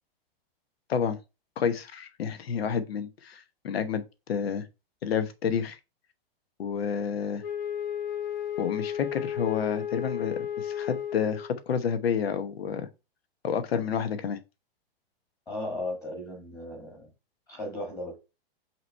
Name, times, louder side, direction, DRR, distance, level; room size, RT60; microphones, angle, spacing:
voice 1, 1.6-4.0 4.3-4.6 5.0-5.8 6.6-7.4 8.6-12.9 13.4-14.4, left 7 dB, 85° left, 1.1 m, -29 dB
Wind instrument woodwind instrument, 7.4-11.6, left 9 dB, 50° left, 1.1 m, -33 dB
voice 2, 15.5-17.1 17.5-18.2, left 1 dB, 10° left, 1.4 m, -36 dB
5.7 x 3.1 x 5.4 m
hypercardioid pair, 180°, 30 cm